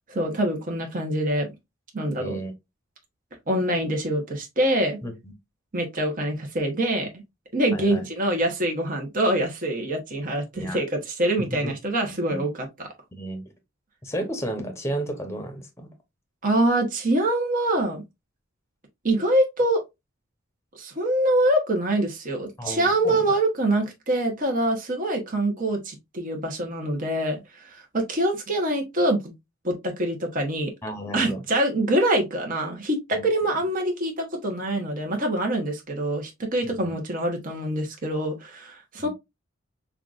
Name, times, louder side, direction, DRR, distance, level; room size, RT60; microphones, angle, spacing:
voice 1, 0.1-1.5 1.9-2.4 3.5-5.0 5.7-7.2 7.5-12.5 16.4-18.0 19.0-19.8 20.7-29.3 29.6-30.7 31.1-39.1, right 1 dB, 40° right, 1.0 m, -25 dB
voice 2, 2.2-2.5 5.0-5.3 7.7-8.0 10.5-10.8 11.4-11.7 12.1-12.4 13.1-13.4 14.0-15.9 22.6-23.3 30.8-31.4 33.1-33.3 36.6-37.0 39.0-39.1, right 1 dB, 15° left, 0.9 m, -33 dB
5.6 x 2.4 x 2.5 m
head